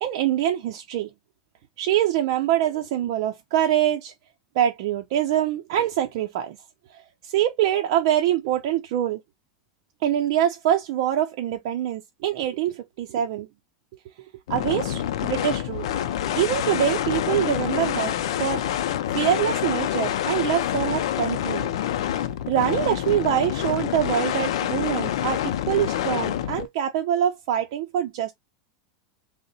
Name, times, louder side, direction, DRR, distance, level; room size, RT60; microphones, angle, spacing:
voice 1, 0.0-1.1 1.8-4.1 4.5-6.6 7.2-9.2 10.0-13.5 14.5-15.9 16.3-18.6 19.1-21.7 22.5-28.3, right 11 dB, 65° right, 0.5 m, -24 dB
sound 1, 14.5-26.7, left 11 dB, 85° left, 0.4 m, -27 dB
3.7 x 2.1 x 4.0 m
supercardioid pair, 140°, 3 cm